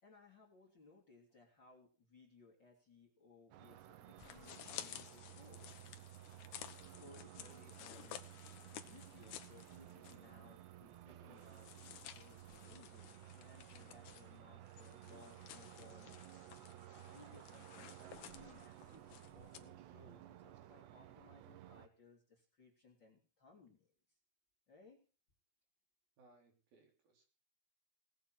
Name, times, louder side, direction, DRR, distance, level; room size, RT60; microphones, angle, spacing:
voice 1, 0.0-5.8 7.0-8.2 8.7-16.2 17.0-23.9 24.7-25.0, left 4 dB, 30° left, -1 dB, 3.2 m, -63 dB
sound 1, 3.5-21.9, right 13 dB, 80° right, 3.2 m, -56 dB
sound 2, 4.2-10.3 10.6-10.7 11.3-19.6, left 11 dB, 75° left, 1.7 m, -54 dB
voice 2, 26.2-27.3, right 2 dB, 60° right, 3 dB, 4.9 m, -68 dB
19.0 x 8.1 x 6.2 m, 0.39 s
omnidirectional pair, 4.9 m